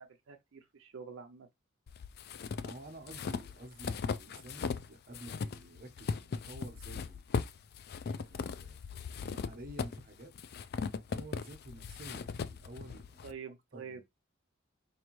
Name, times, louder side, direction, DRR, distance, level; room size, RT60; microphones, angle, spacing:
voice 1, 0.0-1.5 13.2-14.0, right 6 dB, 70° right, 0.5 m, -47 dB
sound 1, 1.9-4.9 5.1-13.3, left 5 dB, 50° left, 0.4 m, -38 dB
voice 2, 2.6-7.2 8.1-10.3 11.1-13.3 13.7-14.0, right 1 dB, 45° right, 0.9 m, -50 dB
4.7 x 2.6 x 3.0 m
head